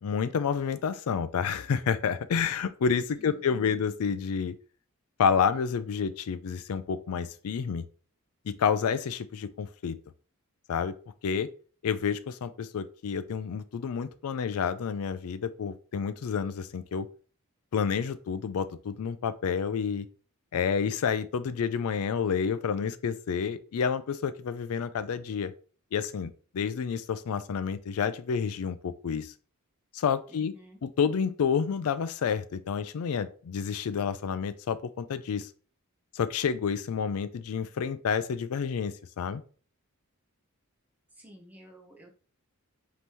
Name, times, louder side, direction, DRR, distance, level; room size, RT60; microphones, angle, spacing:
voice 1, 0.0-4.5 5.2-7.8 8.5-10.0 10.7-10.9 11.2-11.5 11.8-17.1 17.7-20.1 20.5-25.5 25.9-29.3 29.9-30.5 30.8-35.5 36.1-39.4, left 6 dB, 80° left, 13 dB, 0.4 m, -29 dB
voice 2, 3.2-3.8 30.3-30.8 41.1-42.1, equal, 5° right, 0 dB, 0.8 m, -51 dB
5.3 x 2.9 x 3.0 m, 0.40 s
head